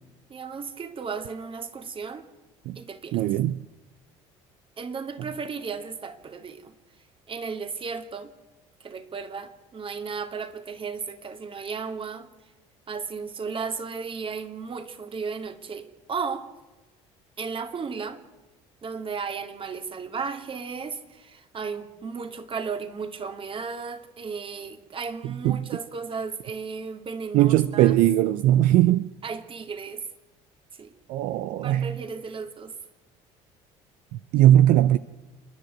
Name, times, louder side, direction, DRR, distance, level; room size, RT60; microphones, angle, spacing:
voice 1, 0.3-2.3 2.8-3.2 4.8-6.7 7.3-8.3 8.8-12.3 12.9-16.5 17.4-18.2 18.8-28.0 29.2-30.0 30.7-30.9 31.6-32.7, right 5 dB, 40° right, 2.4 m, -34 dB
voice 2, 3.1-3.5 25.4-25.6 27.3-29.1 31.1-31.9 34.3-35.0, right 13 dB, 70° right, 0.7 m, -19 dB
29.0 x 10.5 x 9.3 m
supercardioid pair, 75°, 14 cm